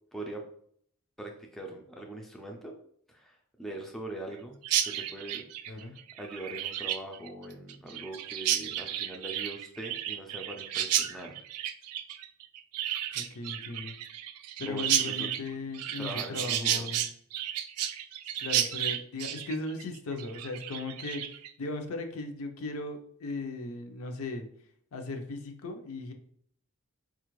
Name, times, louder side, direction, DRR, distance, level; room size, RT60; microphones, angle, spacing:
voice 1, 0.1-0.4 1.2-2.7 3.1-4.6 4.9-5.9 6.2-11.4 14.6-15.3 16.0-16.9, right 2 dB, ahead, 0 dB, 0.3 m, -42 dB
Chirp tweet, 4.6-21.5, right 11 dB, 90° right, 0.3 m, -32 dB
voice 2, 13.1-13.9 14.6-17.1 18.4-24.5 24.9-26.1, left 2 dB, 70° left, 5 dB, 0.5 m, -37 dB
4.3 x 2.4 x 3.0 m, 0.65 s
head